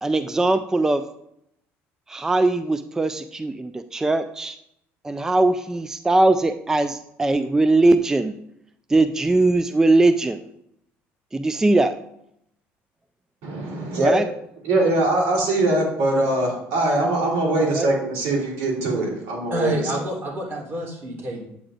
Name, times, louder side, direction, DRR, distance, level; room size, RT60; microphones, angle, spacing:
voice 1, 0.0-1.0 2.1-4.6 5.0-8.3 8.9-10.4 11.3-11.9 14.0-14.3 17.6-17.9, right 2 dB, 10° right, 10 dB, 0.3 m, -20 dB
voice 2, 13.4-14.3 14.6-19.7, right 2 dB, 85° right, -2 dB, 3.3 m, -22 dB
voice 3, 19.5-21.4, equal, 45° right, -2 dB, 3.3 m, -28 dB
9.1 x 8.7 x 2.5 m, 0.77 s
cardioid pair, 120°, 5 cm